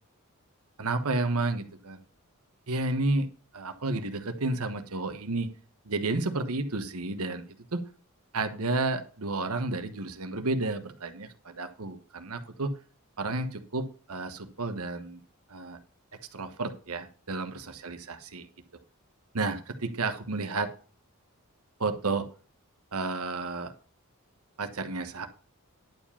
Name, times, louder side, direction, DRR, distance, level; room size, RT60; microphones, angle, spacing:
voice 1, 0.8-2.0 2.7-3.3 3.5-5.5 5.8-7.4 7.7-7.8 8.3-12.7 13.2-15.2 15.5-15.8 16.3-18.5 19.3-20.7 21.8-22.3 22.9-23.7 24.6-25.3, right 2 dB, 90° right, 8 dB, 1.2 m, -31 dB
11.0 x 5.0 x 7.0 m, 0.40 s
head